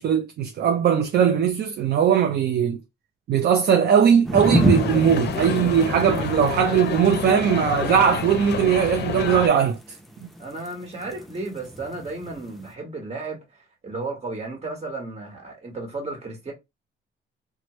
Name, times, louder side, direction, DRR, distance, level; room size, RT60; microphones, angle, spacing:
voice 1, 0.0-2.8 3.3-10.0, right 8 dB, 55° right, 0.5 m, -20 dB
sound 1, 4.2-12.7, right 1 dB, ahead, 0.6 m, -29 dB
sound 2, 4.3-9.5, left 7 dB, 60° left, 0.5 m, -29 dB
voice 2, 10.4-13.4 13.8-16.5, right 3 dB, 30° right, 1.5 m, -33 dB
3.0 x 2.2 x 3.0 m
cardioid pair, 90°, 20 cm